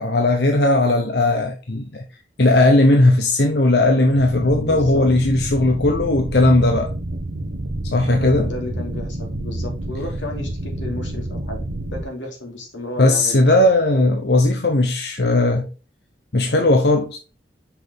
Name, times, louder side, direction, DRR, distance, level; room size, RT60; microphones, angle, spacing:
voice 1, 0.0-2.0 2.4-6.9 7.9-8.5 13.0-15.7 16.3-17.2, left 2 dB, 60° left, 0.8 m, -17 dB
sound 1, 4.1-12.0, right 1 dB, 65° right, 0.9 m, -29 dB
voice 2, 4.7-5.1 8.1-13.4, left 1 dB, 90° left, 2.8 m, -33 dB
5.9 x 5.8 x 3.4 m
head